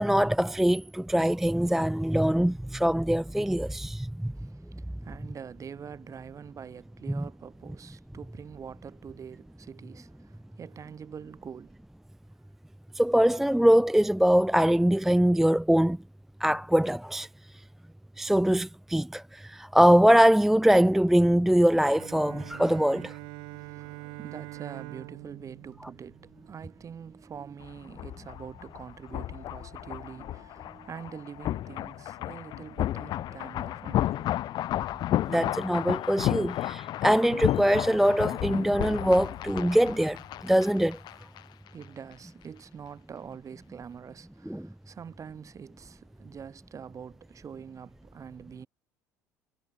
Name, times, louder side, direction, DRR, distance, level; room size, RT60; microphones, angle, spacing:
voice 1, 0.0-4.5 7.1-7.2 12.9-16.0 16.4-17.3 18.2-23.2 35.3-41.0 44.5-44.7, equal, 5° right, 0.4 m, -23 dB
voice 2, 4.3-11.8 23.5-34.4 34.7-35.0 41.4-48.7, right 7 dB, 35° right, 4.6 m, -45 dB
Bowed string instrument, 21.9-26.8, right 37 dB, 70° right, 3.2 m, -44 dB
sound 1, 27.6-41.4 41.7-41.8, left 13 dB, 55° left, 0.9 m, -32 dB
sound 2, 28.3-37.6, left 16 dB, 80° left, 4.9 m, -59 dB
hypercardioid pair, 70°, 9 cm